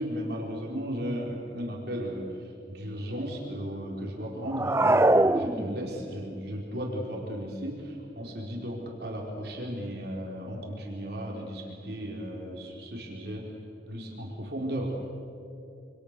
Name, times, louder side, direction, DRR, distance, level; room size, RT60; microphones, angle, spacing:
voice 1, 0.0-2.3 2.7-13.5 13.9-15.0, equal, 60° right, -2 dB, 4.5 m, -35 dB
sound 1, 4.5-6.1, right 2 dB, 15° right, 0.5 m, -23 dB
28.0 x 26.5 x 6.9 m, 2.7 s
head